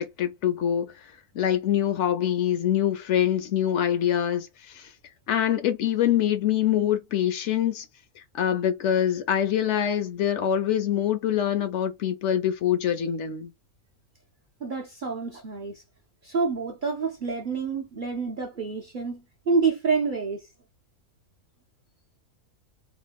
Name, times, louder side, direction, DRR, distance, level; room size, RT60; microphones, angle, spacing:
voice 1, 0.2-0.9 1.3-4.9 5.3-7.9 8.3-13.5, left 10 dB, 65° left, 0.8 m, -24 dB
voice 2, 14.6-15.8 16.2-20.4, right 4 dB, 55° right, 0.6 m, -28 dB
3.1 x 2.1 x 3.3 m
omnidirectional pair, 1.5 m